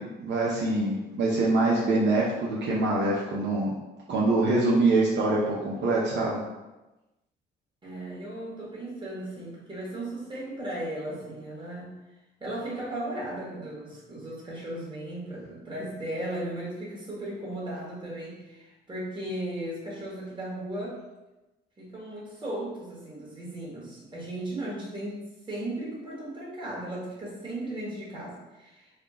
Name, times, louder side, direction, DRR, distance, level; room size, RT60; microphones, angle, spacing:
voice 1, 0.0-3.7 4.1-6.4, right 2 dB, 65° right, -5 dB, 0.7 m, -24 dB
voice 2, 7.8-11.9 12.4-21.0 21.8-28.9, right 1 dB, 25° right, -6 dB, 1.5 m, -36 dB
3.6 x 2.3 x 3.6 m, 1.0 s
cardioid pair, 90°, 20 cm